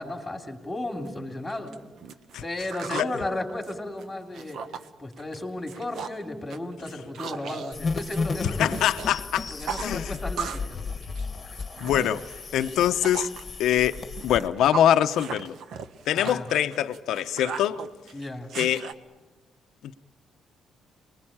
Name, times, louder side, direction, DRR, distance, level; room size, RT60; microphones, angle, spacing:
voice 1, 0.0-1.9 2.4-4.6 5.0-8.7 9.5-10.8 16.1-16.5 18.1-18.5, left 1 dB, 10° left, 3.1 m, -34 dB
sound 1, 1.1-1.2 1.5-3.1 3.5-4.9 5.2-5.4 5.7-6.2 6.5-9.1 9.4-10.7 11.0-13.4 13.9-18.9, right 6 dB, 60° right, 1.2 m, -37 dB
sound 2, 7.7-14.5, left 4 dB, 25° left, 1.8 m, -33 dB
voice 2, 8.6-9.5 9.8-10.2 11.8-12.2 12.5-13.3 13.6-15.5 16.1-17.8 18.5-18.9, left 11 dB, 75° left, 0.9 m, -24 dB
28.5 x 21.0 x 8.8 m
cardioid pair, 165°, 0 cm